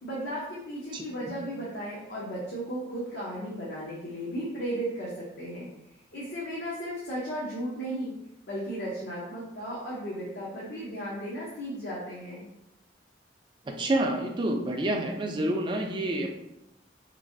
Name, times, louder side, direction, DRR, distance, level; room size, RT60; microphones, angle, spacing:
voice 1, 0.0-5.7 6.1-8.1 8.5-12.5, right 1 dB, 60° left, -6 dB, 0.7 m, -35 dB
voice 2, 13.7-16.3, right 1 dB, 25° right, 2 dB, 0.3 m, -28 dB
3.0 x 2.5 x 2.5 m, 0.86 s
head